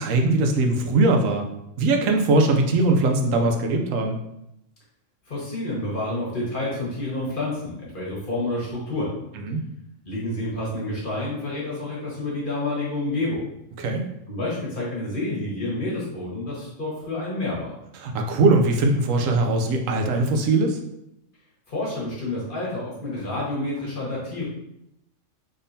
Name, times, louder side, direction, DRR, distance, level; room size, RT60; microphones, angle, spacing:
voice 1, 0.0-1.4 1.8-4.2 9.4-9.6 13.8-14.0 18.0-20.8, right 2 dB, 85° right, 3 dB, 1.0 m, -21 dB
voice 2, 5.3-9.1 10.0-13.4 14.3-17.7 21.7-24.4, left 2 dB, 40° left, -6 dB, 1.4 m, -29 dB
3.7 x 3.7 x 2.6 m, 0.81 s
omnidirectional pair, 1.3 m